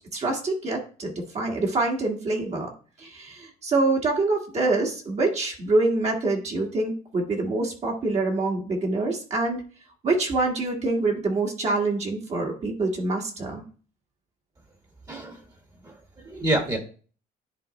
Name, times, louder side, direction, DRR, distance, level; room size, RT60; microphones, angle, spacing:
voice 1, 0.1-2.7 3.0-9.6 10.0-13.6, right 2 dB, 40° right, 0 dB, 1.6 m, -25 dB
voice 2, 15.1-15.4 15.8-16.8, right 1 dB, 25° right, 3 dB, 1.5 m, -28 dB
10.5 x 3.6 x 3.2 m, 0.40 s
cardioid pair, 110°, 17 cm